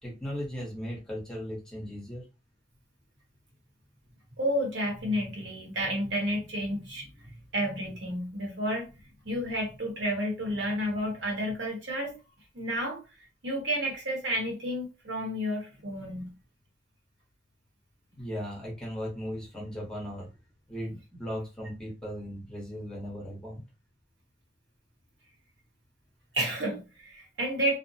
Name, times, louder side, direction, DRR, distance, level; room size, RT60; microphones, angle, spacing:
voice 1, 0.0-2.2 18.1-20.3 20.7-23.6, equal, 5° left, 0.9 m, -37 dB
voice 2, 4.4-8.9 9.2-12.1 12.5-13.0 13.4-16.3 26.3-27.8, equal, 80° right, 1.0 m, -31 dB
2.5 x 2.0 x 2.7 m
head